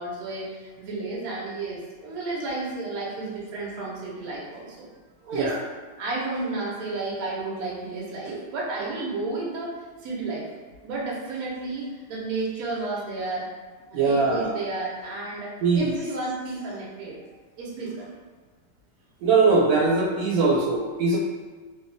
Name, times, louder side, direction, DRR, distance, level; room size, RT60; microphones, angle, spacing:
voice 1, 0.0-4.9 5.2-5.6 6.0-9.7 10.0-10.5 10.8-13.5 13.9-17.2 17.6-18.1, right 3 dB, 65° right, -4 dB, 1.1 m, -32 dB
voice 2, 13.9-14.6 15.6-15.9 19.2-21.2, right 4 dB, 85° right, -3 dB, 1.4 m, -21 dB
3.1 x 2.3 x 2.5 m, 1.4 s
omnidirectional pair, 2.0 m